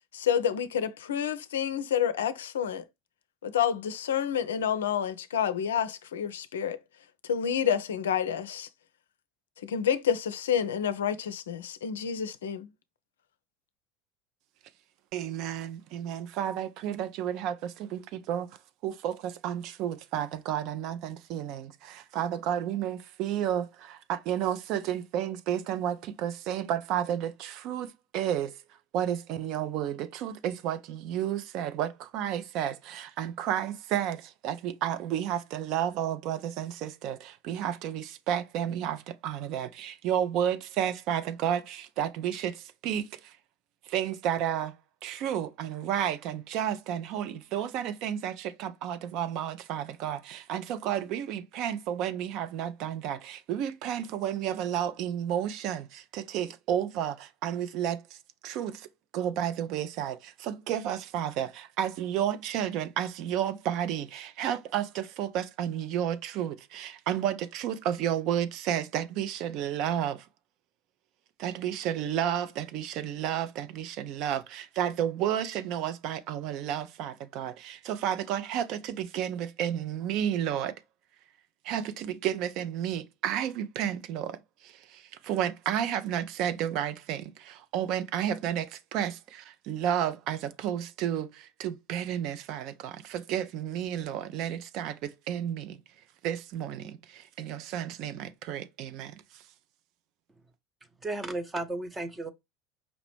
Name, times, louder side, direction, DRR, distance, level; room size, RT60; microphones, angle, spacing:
voice 1, 0.1-2.8 3.4-6.8 7.2-8.7 9.6-12.7, left 8 dB, 70° left, 0.4 m, -29 dB
voice 2, 15.1-18.5 18.8-28.6 28.9-43.4 43.9-44.8 45.0-58.9 59.1-70.3 71.4-80.8 81.6-95.8 96.2-99.4, right 10 dB, 50° right, 0.4 m, -32 dB
voice 3, 101.0-102.3, right 2 dB, 15° right, 0.7 m, -34 dB
5.1 x 2.9 x 3.0 m
figure-of-eight pair, 70°, 0 cm